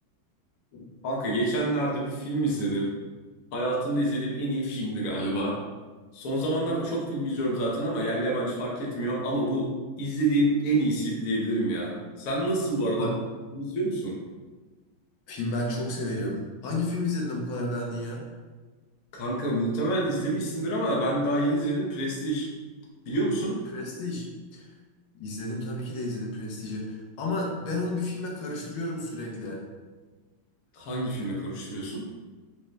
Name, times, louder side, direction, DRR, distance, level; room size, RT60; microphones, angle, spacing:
voice 1, 1.0-2.9 3.5-5.6 6.1-13.1 13.5-14.2 19.1-22.5 23.1-23.6 30.7-32.1, right 1 dB, 60° left, -3 dB, 0.9 m, -27 dB
voice 2, 15.3-18.3 23.7-24.7 25.1-29.6, left 2 dB, 75° left, -2 dB, 1.5 m, -32 dB
5.0 x 2.2 x 3.1 m, 1.3 s
omnidirectional pair, 2.3 m